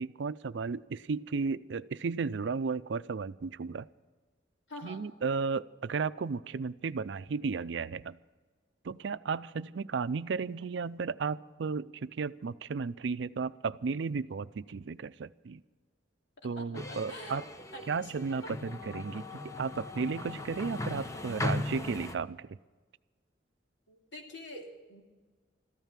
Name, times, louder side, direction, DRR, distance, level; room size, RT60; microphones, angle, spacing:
voice 1, 0.0-3.9 4.8-8.2 8.8-15.6 16.4-17.4 17.9-22.6, right 5 dB, 70° right, 15 dB, 0.5 m, -34 dB
voice 2, 4.7-5.0 16.4-17.4 17.7-18.1 18.4-18.5 23.9-25.0, left 1 dB, 70° left, 1 dB, 2.8 m, -46 dB
sound 1, 16.7-22.1, left 2 dB, 15° left, 0.9 m, -38 dB
14.5 x 12.5 x 7.4 m, 1.3 s
head